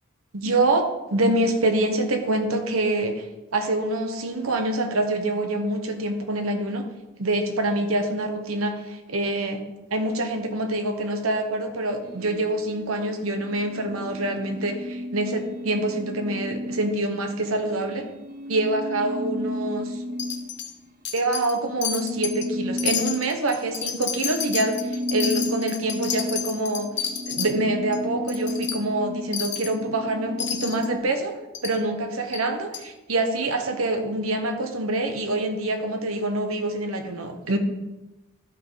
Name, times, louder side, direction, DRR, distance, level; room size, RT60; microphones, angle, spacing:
voice 1, 0.3-3.2 3.5-6.8 7.2-9.6 9.9-18.1 18.5-19.9 21.1-26.9 27.3-31.4 31.6-37.6, right 2 dB, 85° right, 5 dB, 1.2 m, -26 dB
sound 1, 12.0-20.9 21.2-31.0, equal, 45° right, 1.0 m, -34 dB
Wind chime, 20.2-20.7 21.0-21.6 21.8-22.5 22.8-27.5 27.9-28.0 28.3-28.8 29.3-29.7 30.4-30.9 31.5-31.8 32.3-32.4 32.7-32.8, left 8 dB, 55° left, 1.1 m, -30 dB
12.0 x 5.6 x 4.0 m, 1.0 s
head